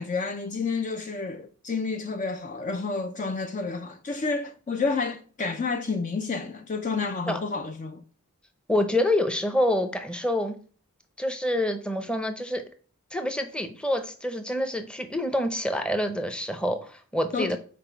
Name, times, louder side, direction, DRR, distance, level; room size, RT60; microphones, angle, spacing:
voice 1, 0.0-8.0 17.3-17.6, left 4 dB, 35° left, 0.4 m, -30 dB
voice 2, 8.7-10.6 11.2-12.6 13.1-17.6, left 1 dB, 5° left, 0.7 m, -27 dB
6.0 x 4.4 x 4.5 m
head